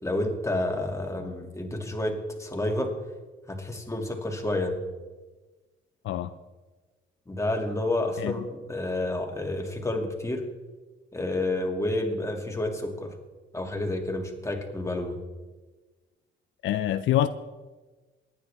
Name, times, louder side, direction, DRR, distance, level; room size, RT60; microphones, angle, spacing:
voice 1, 0.0-2.9 3.5-4.8 7.3-10.4 11.1-13.1 13.5-15.2, left 1 dB, 15° left, 2.5 m, -29 dB
voice 2, 6.0-6.4 8.2-8.3 16.6-17.3, left 12 dB, 75° left, 0.5 m, -25 dB
24.0 x 9.5 x 3.6 m
cardioid pair, 90°, 20 cm